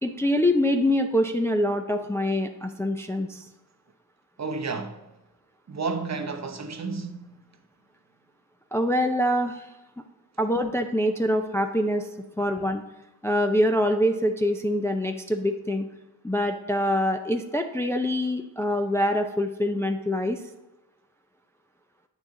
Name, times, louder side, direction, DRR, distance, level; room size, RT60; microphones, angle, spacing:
voice 1, 0.0-3.5 8.7-9.7 10.4-12.1 12.4-12.8 13.2-15.9 16.2-20.4, left 1 dB, 5° left, 0.5 m, -25 dB
voice 2, 4.4-5.0 5.7-7.3 12.4-12.5, right 4 dB, 40° right, 0.9 m, -31 dB
8.8 x 6.4 x 3.7 m
cardioid pair, 80°, 41 cm